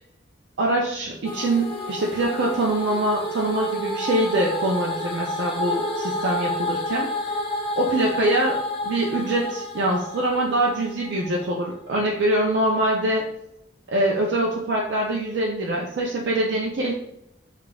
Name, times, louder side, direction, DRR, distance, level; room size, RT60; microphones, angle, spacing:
voice 1, 0.6-7.1 7.8-13.3 13.9-16.9, right 1 dB, 70° right, -2 dB, 0.4 m, -24 dB
sound 1, 1.2-11.5, left 1 dB, 30° left, 0.5 m, -30 dB
5.0 x 2.4 x 2.3 m, 0.82 s
head